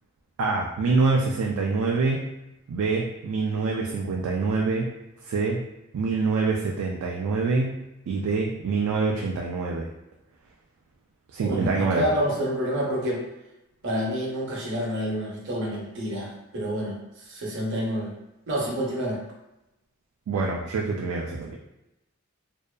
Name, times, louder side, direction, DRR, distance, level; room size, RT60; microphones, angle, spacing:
voice 1, 0.4-2.3 2.7-4.9 5.2-5.6 5.9-7.8 8.1-9.9 11.3-12.1 20.3-21.6, right 4 dB, 80° right, -1 dB, 0.3 m, -25 dB
voice 2, 11.4-13.2 13.8-17.0 17.3-18.1 18.5-19.2, equal, 55° right, -4 dB, 0.7 m, -28 dB
2.6 x 2.2 x 2.2 m, 0.91 s
head